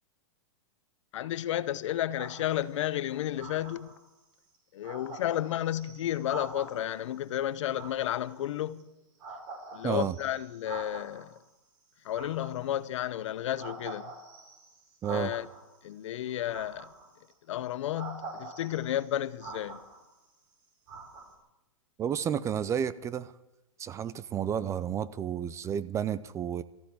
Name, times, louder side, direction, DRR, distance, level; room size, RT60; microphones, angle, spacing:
voice 1, 1.1-3.9 4.7-8.9 9.7-11.4 12.0-14.1 15.1-15.5 15.8-16.9 17.5-19.8, left 12 dB, 65° left, 0.8 m, -32 dB
sound 1, 2.2-2.8 3.4-4.1 4.5-4.6 4.8-7.0 7.7-8.8 9.2-11.4 12.0-13.0 13.6-15.8 16.5-17.3 17.9-20.3 20.9-21.4, right 3 dB, 50° right, 5.0 m, -45 dB
voice 2, 9.8-10.2 15.0-15.3 22.0-23.3 23.8-26.6, right 9 dB, 15° right, 0.4 m, -31 dB
14.0 x 10.0 x 9.9 m
hypercardioid pair, 130°, 17 cm